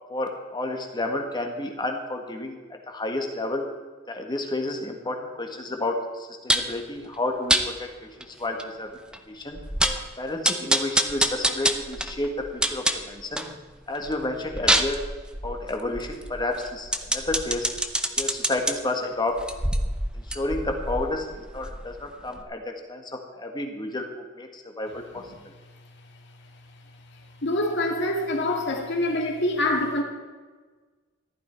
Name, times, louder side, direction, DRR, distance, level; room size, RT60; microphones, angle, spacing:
voice 1, 0.1-2.6 2.9-3.6 4.1-8.9 9.3-9.6 10.2-13.5 13.9-15.0 15.4-17.7 18.2-19.4 20.1-23.0 23.4-24.1 24.4-25.2, left 2 dB, 20° left, 3 dB, 1.6 m, -31 dB
sound 1, 6.5-6.8 7.5-7.7 8.2-8.3 8.6-8.7 9.1-9.2 9.6-10.1 10.4-13.5 13.9-18.7 19.3-22.0 22.4-22.5, right 1 dB, 5° right, 0.7 m, -26 dB
voice 2, 27.4-30.0, left 1 dB, 60° left, 2 dB, 2.2 m, -25 dB
14.5 x 12.0 x 4.5 m, 1.4 s
head